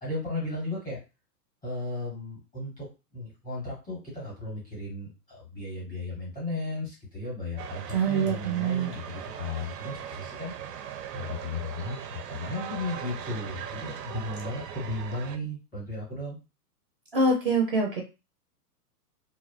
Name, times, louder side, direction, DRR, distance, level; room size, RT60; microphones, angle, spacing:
voice 1, 0.0-1.0 1.6-2.9 3.1-10.5 11.1-16.4, left 2 dB, 10° left, -6 dB, 0.5 m, -35 dB
sound 1, 7.6-15.4, right 8 dB, 80° right, 0.6 m, -40 dB
voice 2, 7.9-8.9 17.1-18.0, right 3 dB, 40° right, 0 dB, 0.4 m, -25 dB
2.6 x 2.0 x 2.4 m, 0.29 s
hypercardioid pair, 155°, 47 cm